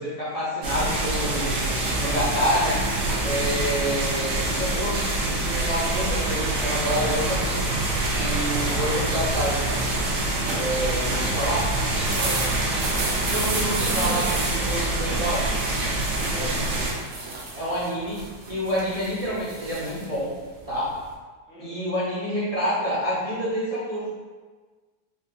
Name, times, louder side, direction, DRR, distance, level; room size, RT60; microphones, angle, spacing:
voice 1, 0.0-1.7 2.0-2.8 3.2-7.6 8.1-9.6 10.5-11.7 13.2-15.6 17.5-20.3 20.7-20.9 21.6-24.1, equal, 45° right, -10 dB, 0.4 m, -28 dB
sound 1, 0.6-16.9, right 2 dB, 85° right, 1.4 m, -25 dB
voice 2, 12.0-12.6 13.0-13.3 13.8-14.4 16.2-16.6 21.5-21.8, equal, 65° left, -8 dB, 1.7 m, -37 dB
sound 2, 12.0-21.1, right 3 dB, 70° right, 1.1 m, -34 dB
4.6 x 2.2 x 2.7 m, 1.4 s
omnidirectional pair, 1.8 m